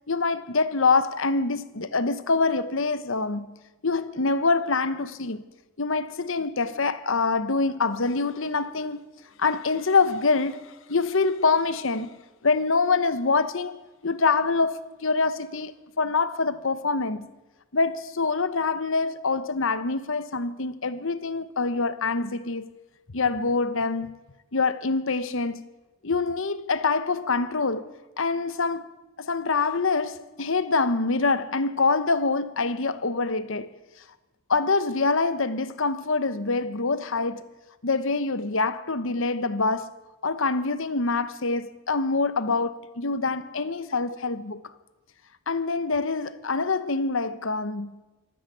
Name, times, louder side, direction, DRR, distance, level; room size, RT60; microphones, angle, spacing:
voice 1, 0.1-3.6 3.8-5.4 5.8-9.0 9.4-12.1 12.4-13.8 14.0-15.7 16.0-17.3 17.7-22.7 23.1-24.2 24.5-25.6 26.0-27.8 28.2-28.9 29.2-33.7 34.5-37.4 37.8-39.9 40.2-44.6 45.5-48.0, left 4 dB, 65° left, 1.1 m, -25 dB
25.0 x 13.5 x 9.3 m
head